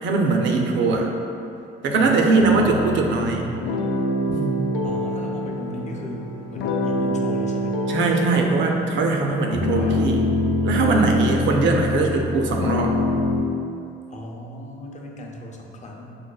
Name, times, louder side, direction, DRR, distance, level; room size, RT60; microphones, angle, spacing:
voice 1, 0.0-1.1 1.8-3.4 4.3-4.7 7.9-10.2 10.6-13.0, right 3 dB, 70° right, 1 dB, 0.5 m, -21 dB
voice 2, 1.9-3.5 4.8-7.7 9.7-10.1 14.1-16.1, left 1 dB, 35° left, 0 dB, 0.6 m, -36 dB
sound 1, 2.4-13.4, left 2 dB, 90° left, 0.4 m, -25 dB
6.2 x 2.1 x 2.3 m, 2.6 s
cardioid pair, 90°, 20 cm